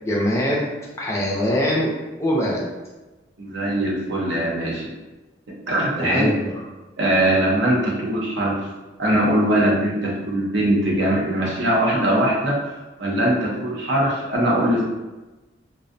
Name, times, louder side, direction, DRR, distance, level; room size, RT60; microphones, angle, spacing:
voice 1, 0.0-0.7 1.0-1.9 2.2-2.7 6.0-6.5, equal, 15° left, -4 dB, 0.4 m, -22 dB
voice 2, 3.4-4.8 5.7-6.3 7.0-8.7 9.0-14.8, right 1 dB, 70° right, -3 dB, 0.6 m, -21 dB
2.4 x 2.0 x 2.5 m, 1.1 s
head